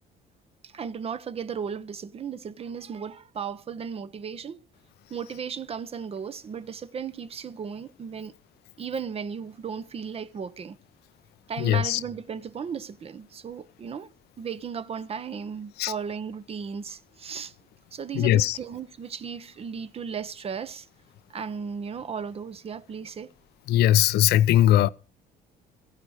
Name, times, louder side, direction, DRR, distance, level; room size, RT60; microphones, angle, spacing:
voice 1, 0.6-4.6 5.1-8.3 8.8-10.8 11.5-14.1 14.4-17.5 17.9-20.9 21.3-23.3, right 6 dB, 35° right, 0.8 m, -35 dB
voice 2, 11.6-12.0 15.8-15.9 18.2-18.6 23.7-24.9, left 12 dB, 70° left, 0.5 m, -20 dB
14.5 x 10.5 x 4.8 m
cardioid pair, 110°, 17 cm